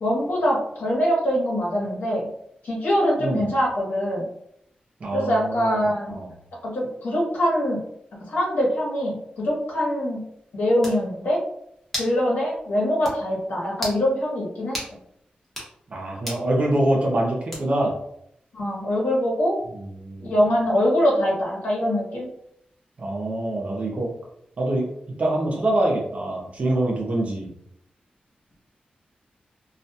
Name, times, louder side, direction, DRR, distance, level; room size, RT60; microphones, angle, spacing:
voice 1, 0.0-2.3 2.6-4.3 5.1-6.1 6.6-7.8 8.1-10.2 10.5-11.4 12.0-14.8 18.5-19.5 20.2-22.3, equal, 80° left, -4 dB, 1.0 m, -23 dB
voice 2, 5.0-5.8 6.1-6.3 15.9-18.0 19.7-20.3 23.0-24.1 24.6-24.9 25.2-27.5, right 1 dB, 45° right, -2 dB, 0.8 m, -25 dB
sound 1, 10.4-10.5 10.8-11.0 11.9-12.2 12.6-12.7 13.0-13.2 13.7-14.0 14.7-14.9 15.4-15.7 16.3-16.5 17.5-17.9, equal, 5° left, 0.9 m, -33 dB
2.4 x 2.3 x 2.7 m, 0.74 s
wide cardioid pair, 135°, 3 cm